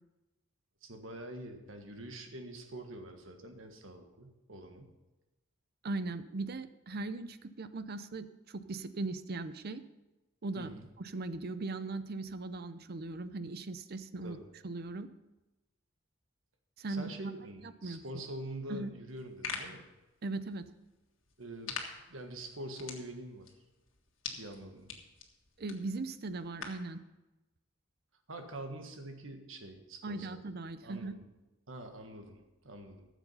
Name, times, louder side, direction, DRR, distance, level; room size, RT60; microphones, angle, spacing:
voice 1, 0.8-4.9 10.6-10.9 14.2-14.5 16.9-19.8 21.4-21.8 22.1-23.5 24.3-24.9 28.3-30.4 30.8-31.1 31.7-33.1, right 1 dB, 90° right, 5 dB, 1.6 m, -45 dB
voice 2, 5.8-9.8 10.4-10.7 11.0-14.4 14.6-15.1 16.8-17.1 17.6-18.0 18.7-18.9 20.2-20.7 25.6-27.0 30.0-31.1, right 3 dB, 50° right, 12 dB, 0.6 m, -39 dB
sound 1, 19.1-26.9, left 5 dB, 85° left, 1.8 m, -46 dB
13.5 x 7.3 x 5.5 m, 1.0 s
head